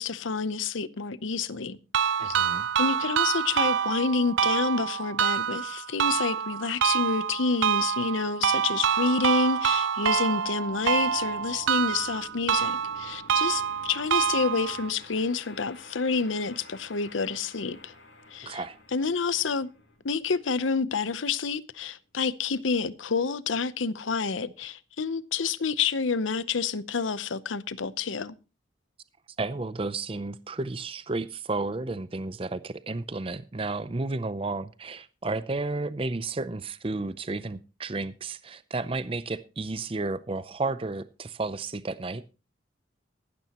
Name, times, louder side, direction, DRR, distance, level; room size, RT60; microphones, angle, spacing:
voice 1, 0.0-1.8 2.2-2.4 2.8-17.9 18.3-18.6 18.9-19.7 20.0-28.3, left 4 dB, 85° left, 0.8 m, -28 dB
sound 1, 1.9-14.9, right 7 dB, 80° right, 0.5 m, -27 dB
voice 2, 2.2-2.7 18.4-18.8 29.4-42.2, right 3 dB, 30° right, 0.5 m, -32 dB
sound 2, 10.6-21.8, left 2 dB, 70° left, 4.7 m, -52 dB
15.0 x 12.5 x 3.0 m
head